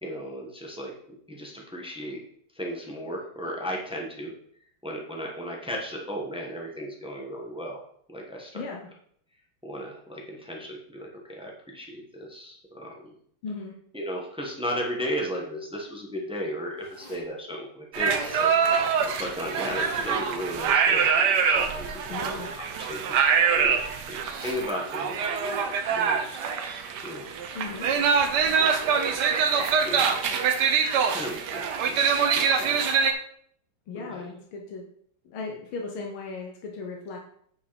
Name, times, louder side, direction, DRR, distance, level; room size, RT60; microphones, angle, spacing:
voice 1, 0.0-0.9 1.3-2.2 2.5-4.3 4.8-7.8 8.1-8.6 9.6-13.1 13.9-18.5 19.0-26.4 27.0-27.4 27.7-27.9 28.6-29.2 29.5-32.0 32.3-32.8 33.9-34.2, equal, 5° right, 0 dB, 1.3 m, -36 dB
voice 2, 8.5-8.9 13.4-13.8 22.1-22.5 27.5-27.9 33.9-34.9 35.2-37.2, left 4 dB, 90° left, 1 dB, 2.0 m, -36 dB
Zipper (clothing), 16.8-17.3 18.0-18.5 19.5-20.4 20.9-21.9 23.0-23.5 24.2-24.7 25.2-25.7, left 2 dB, 15° left, 1.8 m, -48 dB
sound 1, 17.9-33.1, right 6 dB, 65° right, 1.3 m, -24 dB
9.1 x 5.6 x 4.3 m, 0.63 s
omnidirectional pair, 2.2 m